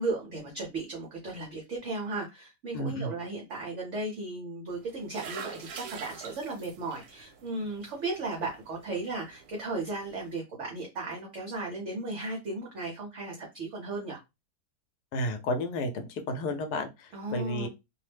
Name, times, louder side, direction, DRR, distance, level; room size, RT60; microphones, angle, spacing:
voice 1, 0.0-14.2 17.1-17.7, right 2 dB, 60° right, 0 dB, 0.9 m, -35 dB
voice 2, 2.7-3.1 15.1-17.7, left 1 dB, 80° left, 6 dB, 1.2 m, -32 dB
sound 1, 4.7-10.3, right 6 dB, 75° right, 1.1 m, -46 dB
2.8 x 2.0 x 3.2 m, 0.23 s
omnidirectional pair, 1.7 m